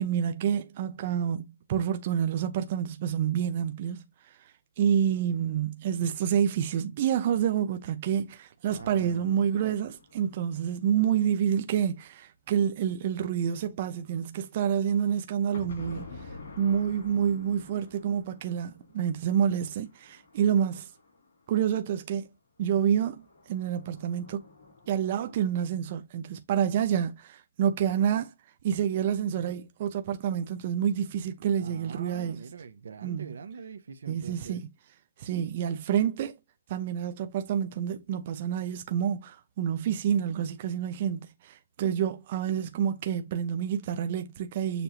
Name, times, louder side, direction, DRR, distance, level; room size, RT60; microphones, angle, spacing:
voice 1, 0.0-16.3 16.6-20.9 21.5-22.3 22.6-24.4 24.9-28.3 28.6-32.4 33.0-33.4 34.1-34.7 35.2-36.3 36.7-44.8, right 9 dB, 35° right, 0.6 m, -28 dB
sound 1, 8.7-11.5 15.5-21.8 23.1-25.5, left 3 dB, 60° left, 3.0 m, -49 dB
voice 2, 8.7-9.8 31.5-34.6, right 6 dB, 75° right, 0.7 m, -44 dB
6.8 x 2.6 x 2.9 m
hypercardioid pair, 165°, 0 cm